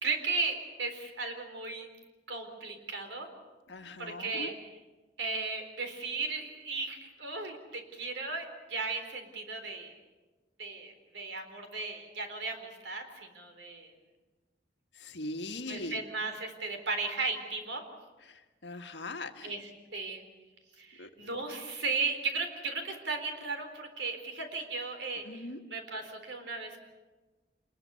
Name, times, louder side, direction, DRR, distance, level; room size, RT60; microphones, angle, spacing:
voice 1, 0.0-1.9 2.3-3.3 4.0-4.5 5.2-9.9 10.6-13.9 15.7-17.8 19.4-20.2 20.8-25.4 25.7-26.8, right 3 dB, 85° right, 5 dB, 4.0 m, -36 dB
voice 2, 3.7-4.5 14.9-16.0 18.2-19.5 21.0-21.1 25.2-25.6, left 2 dB, 80° left, 5 dB, 1.7 m, -41 dB
27.5 x 21.0 x 7.0 m, 1.2 s
head